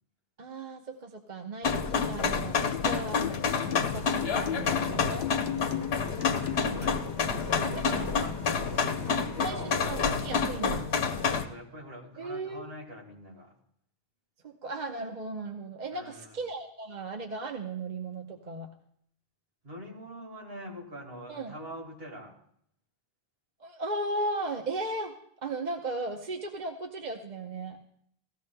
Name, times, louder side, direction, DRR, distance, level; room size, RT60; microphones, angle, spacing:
voice 1, 0.4-3.2 3.6-5.3 7.6-8.1 9.4-10.9 12.2-12.7 14.4-18.7 21.3-21.5 23.6-25.1 25.4-27.8, right 2 dB, 50° right, 3 dB, 0.9 m, -36 dB
sound 1, 1.6-11.4, left 5 dB, 80° left, 1.0 m, -29 dB
sound 2, 2.7-7.0, left 10 dB, 60° left, 0.7 m, -36 dB
Vehicle, 4.1-9.8, left 2 dB, 20° left, 1.0 m, -46 dB
voice 2, 6.2-9.7 11.2-13.5 15.9-16.3 19.6-22.3, equal, 70° right, 0 dB, 2.3 m, -43 dB
17.5 x 14.5 x 2.2 m, 0.68 s
omnidirectional pair, 1.0 m